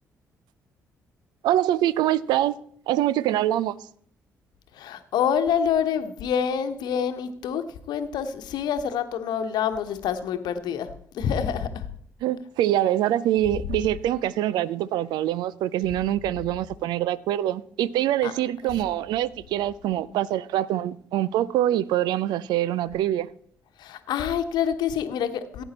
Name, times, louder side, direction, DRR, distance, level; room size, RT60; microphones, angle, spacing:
voice 1, 1.4-2.6 2.9-3.8 12.2-23.3, right 13 dB, 65° right, 0.5 m, -24 dB
voice 2, 4.7-10.9 11.1-11.9 18.2-18.3 23.8-25.6, left 8 dB, 60° left, 1.1 m, -27 dB
16.0 x 9.0 x 4.2 m
figure-of-eight pair, 45°, 8 cm